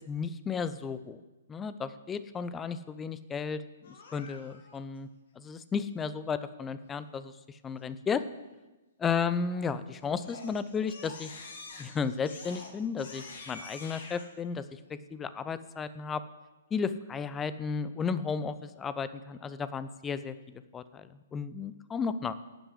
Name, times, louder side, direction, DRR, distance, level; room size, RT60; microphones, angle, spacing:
voice 1, 0.1-1.2 1.5-3.6 3.9-5.1 5.4-8.2 9.0-11.3 11.8-16.2 16.7-22.3, left 5 dB, 15° left, 14 dB, 0.6 m, -34 dB
Crying sobbing, 3.8-4.8 9.5-9.8 10.2-14.3, left 3 dB, 55° left, 2.1 m, -47 dB
11.5 x 7.9 x 7.8 m, 1.1 s
figure-of-eight pair, 120°, 0 cm